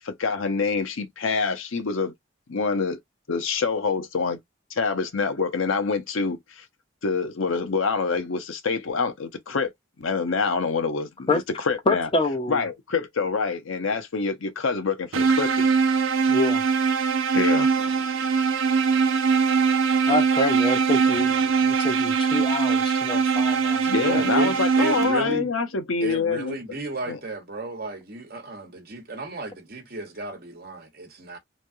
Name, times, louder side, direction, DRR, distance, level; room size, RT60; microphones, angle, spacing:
voice 1, 0.1-2.1 2.5-3.0 3.3-4.4 4.7-6.7 7.0-9.7 10.0-12.1 12.5-15.8 17.3-17.7 18.3-18.5 20.0-20.1 23.9-26.6 27.1-27.2, left 4 dB, 80° left, 0.7 m, -26 dB
voice 2, 11.9-12.6 16.3-16.6 20.1-23.9, left 2 dB, 25° left, 0.6 m, -26 dB
sound 1, 15.1-25.5, right 5 dB, 75° right, 0.5 m, -22 dB
voice 3, 24.0-25.5 26.0-31.4, right 2 dB, 50° right, 1.0 m, -34 dB
3.2 x 2.2 x 2.6 m
head